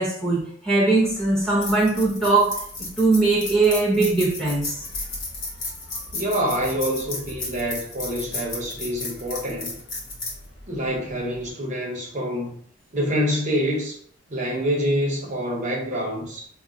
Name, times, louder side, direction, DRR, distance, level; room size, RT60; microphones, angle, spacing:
voice 1, 0.0-2.6 3.0-4.8, right 3 dB, 5° left, 0.8 m, -20 dB
sound 1, 1.1-11.5, left 2 dB, 60° left, 1.0 m, -34 dB
voice 2, 6.1-9.7 10.7-12.5 12.9-14.0 14.3-16.5, equal, 35° right, 0.6 m, -26 dB
2.3 x 2.3 x 3.7 m
head